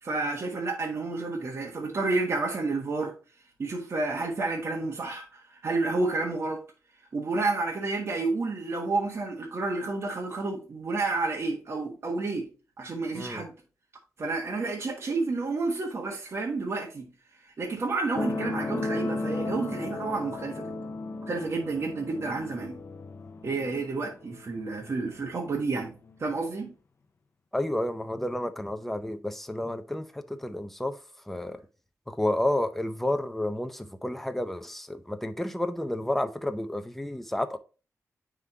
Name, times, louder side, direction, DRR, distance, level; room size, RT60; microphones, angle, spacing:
voice 1, 0.0-3.1 3.6-6.6 7.1-12.5 12.8-13.5 14.2-17.1 17.6-20.7 21.3-22.8 23.4-26.7, right 3 dB, 50° right, 1.5 m, -30 dB
sound 1, 18.1-25.2 26.1-26.2, left 2 dB, 40° left, 0.7 m, -35 dB
voice 2, 27.5-31.0 31.3-31.6 32.1-37.6, left 1 dB, 5° left, 0.6 m, -31 dB
9.6 x 3.7 x 2.8 m
wide cardioid pair, 140°, 6 cm